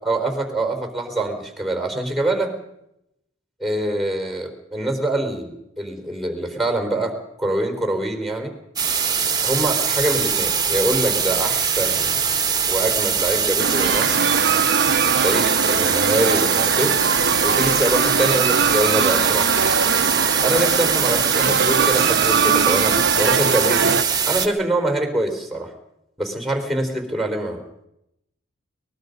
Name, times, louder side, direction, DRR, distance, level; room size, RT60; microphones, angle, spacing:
voice 1, 0.0-2.5 3.6-8.5 9.4-12.2 12.7-14.2 15.2-16.9 17.4-19.7 20.4-24.0 24.2-25.7 26.2-27.6, right 1 dB, ahead, 5 dB, 4.2 m, -24 dB
sound 1, 8.8-24.5, right 6 dB, 20° right, 1.7 m, -22 dB
sound 2, 13.6-24.0, right 6 dB, 60° right, 0.8 m, -21 dB
23.5 x 21.0 x 5.4 m, 0.81 s
head